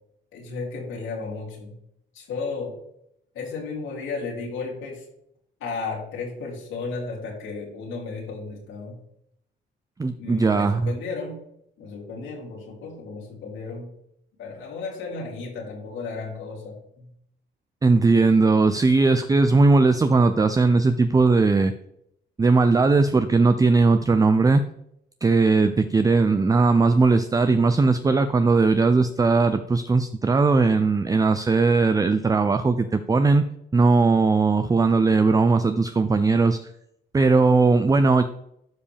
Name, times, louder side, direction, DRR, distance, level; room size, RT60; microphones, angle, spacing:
voice 1, 0.3-1.7 2.1-2.8 3.3-5.0 5.6-9.0 10.2-11.5 11.8-13.9 14.4-17.1, left 4 dB, 85° left, -2 dB, 3.1 m, -34 dB
voice 2, 10.0-10.9 17.8-21.7 22.4-24.6 25.2-33.5 33.7-36.7 37.1-38.2, right 3 dB, 20° right, 10 dB, 0.4 m, -19 dB
12.0 x 5.2 x 3.4 m, 0.76 s
cardioid pair, 90°, 20 cm